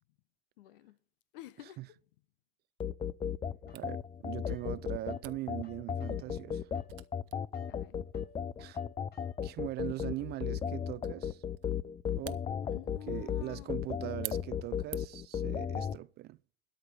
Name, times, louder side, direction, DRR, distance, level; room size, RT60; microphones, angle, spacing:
voice 1, 0.6-1.0 1.3-1.8 7.7-8.0 12.5-13.8, left 13 dB, 65° left, 0.9 m, -50 dB
sound 1, 2.8-16.0, left 8 dB, 20° left, 0.5 m, -35 dB
sound 2, 3.7-5.3 5.6-9.7, left 6 dB, 35° left, 5.0 m, -61 dB
voice 2, 3.7-6.7 8.6-8.8 9.4-11.4 12.1-12.4 13.1-16.4, right 17 dB, 35° right, 0.4 m, -41 dB
Camera, 3.7-15.3, right 17 dB, 70° right, 0.8 m, -52 dB
13.0 x 5.2 x 8.7 m
hypercardioid pair, 90°, 29 cm